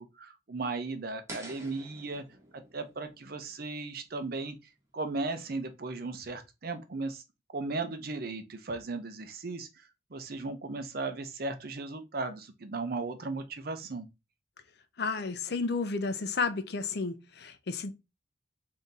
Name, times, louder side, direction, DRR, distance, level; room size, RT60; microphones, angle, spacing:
voice 1, 0.2-2.2 2.5-4.6 4.9-7.2 7.5-9.7 10.1-14.1, right 3 dB, 55° right, 0.6 m, -36 dB
sound 1, 1.3-4.3, right 1 dB, 15° right, 1.1 m, -48 dB
voice 2, 15.0-17.9, left 4 dB, 60° left, 0.6 m, -32 dB
3.7 x 2.7 x 4.0 m
head